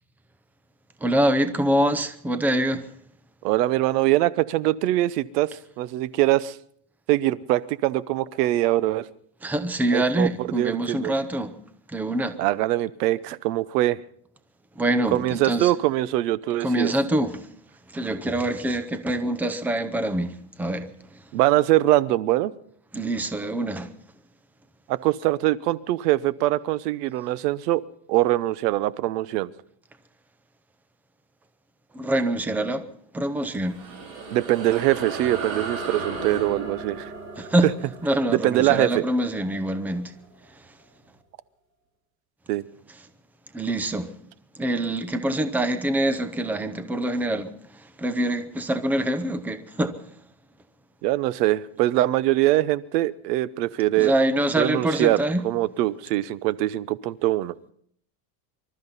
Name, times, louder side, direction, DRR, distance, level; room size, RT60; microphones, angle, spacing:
voice 1, 1.0-2.9 9.4-11.5 11.9-12.4 14.8-15.7 16.6-17.5 17.9-21.2 22.9-23.9 31.9-32.9 33.1-33.8 37.4-37.7 38.0-40.1 43.5-44.1 44.6-50.0 53.9-55.4, right 1 dB, 5° right, 0.7 m, -25 dB
voice 2, 3.4-5.5 5.8-6.6 7.1-9.1 9.9-11.1 12.4-14.0 15.1-16.9 21.3-22.5 24.9-27.8 28.1-29.5 34.3-37.1 38.3-39.0 42.5-42.6 51.0-54.1 54.6-57.5, right 15 dB, 80° right, 0.9 m, -23 dB
sound 1, 33.4-40.2, right 3 dB, 50° right, 5.7 m, -36 dB
25.5 x 13.0 x 4.1 m
supercardioid pair, 150°, 47 cm